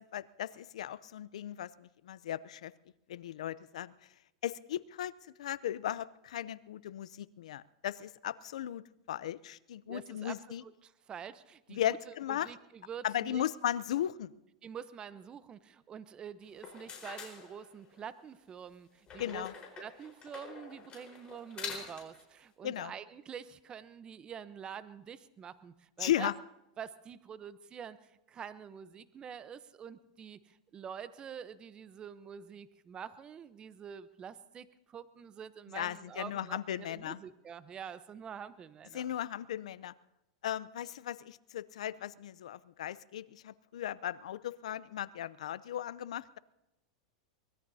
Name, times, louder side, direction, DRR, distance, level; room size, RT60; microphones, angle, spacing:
voice 1, 0.0-2.7 3.1-3.9 4.4-5.1 5.4-10.6 11.7-12.5 13.0-14.3 19.2-19.5 22.6-22.9 26.0-26.3 35.7-37.2 38.9-39.9 40.4-46.4, left 11 dB, 80° left, 18 dB, 0.6 m, -36 dB
voice 2, 9.9-13.4 14.6-19.5 19.8-26.3 26.8-39.0, right 8 dB, 25° right, 14 dB, 0.8 m, -46 dB
sound 1, 16.5-18.1 19.1-22.2, left 6 dB, 30° left, 4.5 m, -46 dB
23.5 x 20.5 x 2.8 m, 0.91 s
hypercardioid pair, 115°, 3 cm